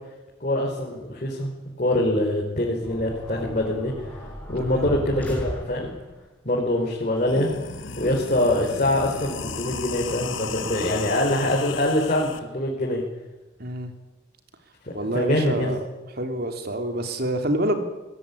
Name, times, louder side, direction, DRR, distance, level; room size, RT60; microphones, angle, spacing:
voice 1, 0.4-1.5 1.8-4.2 4.5-5.9 6.4-7.5 7.9-13.0 14.8-15.7, left 1 dB, 40° left, -3 dB, 4.6 m, -24 dB
sound 1, 2.8-6.2, equal, 10° left, 5.3 m, -35 dB
sound 2, 6.7-6.8 7.1-12.4, left 5 dB, 75° left, 1.6 m, -35 dB
voice 2, 13.6-13.9 14.9-15.8 16.1-17.8, right 1 dB, 55° right, 6 dB, 3.2 m, -27 dB
22.0 x 19.5 x 9.9 m, 1.1 s
head